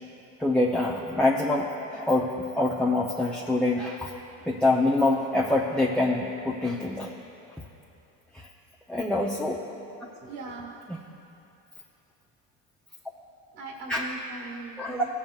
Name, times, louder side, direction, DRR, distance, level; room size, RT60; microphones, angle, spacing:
voice 1, 0.4-4.1 4.5-7.1 8.3-8.5 8.9-9.8 10.9-11.0 13.9-14.1 14.8-15.0, left 2 dB, ahead, -3 dB, 0.6 m, -25 dB
voice 2, 10.2-10.7 13.6-15.1, right 2 dB, 60° right, 0 dB, 1.7 m, -39 dB
18.0 x 7.2 x 2.4 m, 2.8 s
supercardioid pair, 100°, 39 cm